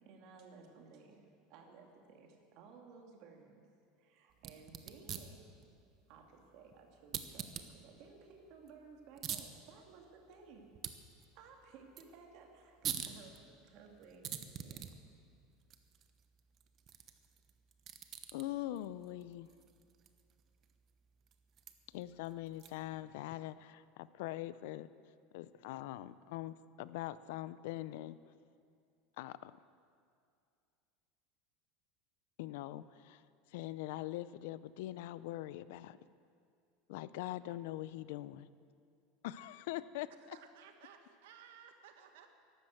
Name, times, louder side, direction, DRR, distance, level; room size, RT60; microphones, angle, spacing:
voice 1, 0.0-3.6 4.0-5.7 6.1-10.7 11.3-14.9, right 5 dB, 55° right, 2 dB, 2.4 m, -57 dB
sound 1, 4.3-23.0, right 9 dB, 35° right, 0.9 m, -48 dB
voice 2, 18.3-19.5 21.9-24.9 25.3-28.2 29.2-29.6 32.4-33.2 33.5-36.0 36.9-38.5 39.2-40.4, left 15 dB, 70° left, 16 dB, 0.5 m, -43 dB
voice 3, 40.3-42.3, right 8 dB, 85° right, 6 dB, 1.5 m, -57 dB
13.0 x 12.0 x 7.8 m, 2.4 s
supercardioid pair, 150°, 0 cm